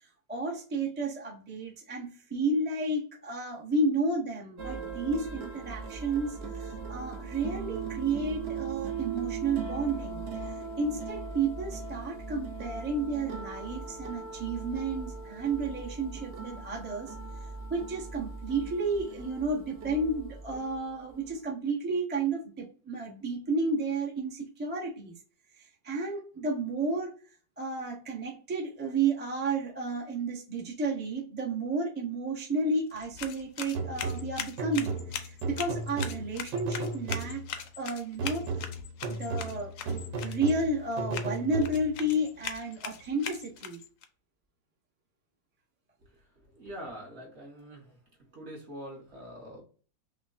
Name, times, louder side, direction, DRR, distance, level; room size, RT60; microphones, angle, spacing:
voice 1, 0.3-17.1 17.7-25.1 25.6-27.1 27.6-34.9 35.2-38.5 39.1-43.8, right 2 dB, 10° right, -3 dB, 0.6 m, -32 dB
sound 1, 4.6-21.4, right 5 dB, 65° right, 0.6 m, -39 dB
sound 2, 32.9-44.0, left 8 dB, 70° left, 0.7 m, -41 dB
sound 3, 33.7-37.6 38.2-42.1, right 3 dB, 90° right, 1.4 m, -35 dB
voice 2, 46.1-48.0 48.3-49.6, equal, 45° right, -2 dB, 1.3 m, -44 dB
5.7 x 2.2 x 2.4 m, 0.40 s
omnidirectional pair, 1.9 m